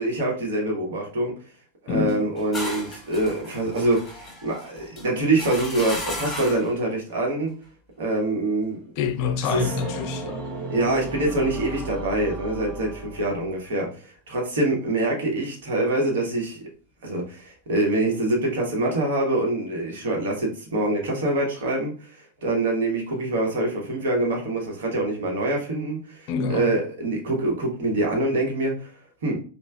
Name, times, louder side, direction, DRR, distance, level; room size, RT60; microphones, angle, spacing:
voice 1, 0.0-1.3 1.8-7.5 8.0-8.8 9.5-9.8 10.7-16.6 17.0-28.9 29.2-29.4, right 2 dB, 60° right, 1.1 m, -25 dB
sound 1, 2.1-6.8, left 1 dB, 10° left, 1.2 m, -35 dB
voice 2, 9.0-10.4 26.3-26.7, left 6 dB, 45° left, 0.4 m, -26 dB
sound 2, 9.5-13.6, right 2 dB, 35° right, 1.2 m, -34 dB
5.4 x 2.2 x 2.3 m
figure-of-eight pair, 90°, 0 cm